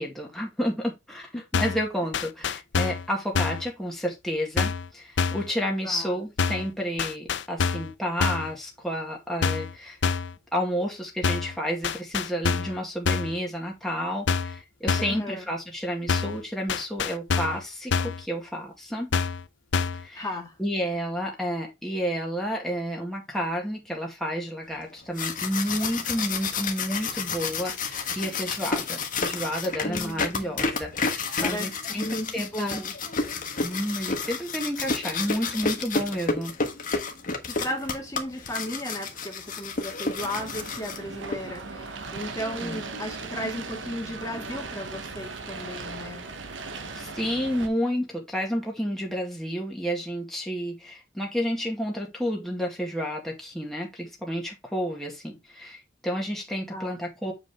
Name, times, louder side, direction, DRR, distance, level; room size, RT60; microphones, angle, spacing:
voice 1, 0.0-10.0 10.5-19.1 20.0-20.3 20.6-32.8 33.6-36.5 42.6-42.8 47.0-57.3, equal, ahead, 1.9 m, -31 dB
sound 1, 1.5-1.9 2.1-3.1 3.4-3.7 4.6-4.9 5.2-5.5 6.4-6.7 7.0-7.9 8.2-8.5 9.4-9.7 10.0-10.3 11.2-11.6 11.8-12.8 13.1-13.4 14.3-14.6 14.9-15.2 16.1-16.4 16.7-17.6 17.9-18.2 19.1-19.4 19.7-20.1, left 5 dB, 70° left, 0.6 m, -26 dB
voice 2, 15.0-15.5 20.2-20.5 29.8-30.7 31.4-33.0 37.5-46.3 56.7-56.9, left 1 dB, 20° left, 1.9 m, -35 dB
sound 2, 24.9-41.4, left 4 dB, 45° left, 1.4 m, -30 dB
sound 3, 40.2-47.7, right 3 dB, 85° right, 1.2 m, -38 dB
7.9 x 5.0 x 3.5 m
head